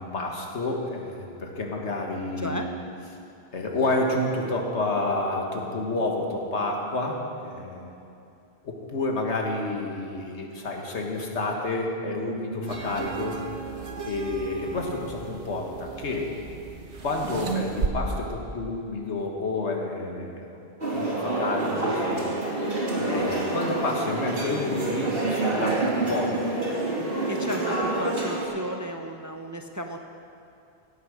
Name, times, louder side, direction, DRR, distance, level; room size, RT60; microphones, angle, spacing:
voice 1, 0.0-2.7 3.5-7.9 8.6-13.4 14.1-16.3 17.0-20.5 20.9-22.2 23.0-26.3, left 2 dB, 85° left, 1 dB, 1.8 m, -29 dB
sound 1, 12.7-17.9, right 6 dB, 90° right, 1.5 m, -34 dB
sound 2, 20.8-28.5, right 2 dB, 55° right, 2.8 m, -27 dB
voice 2, 22.9-23.3 27.3-30.0, equal, 20° right, 4 dB, 0.6 m, -34 dB
16.5 x 8.4 x 6.4 m, 2.7 s
omnidirectional pair, 1.1 m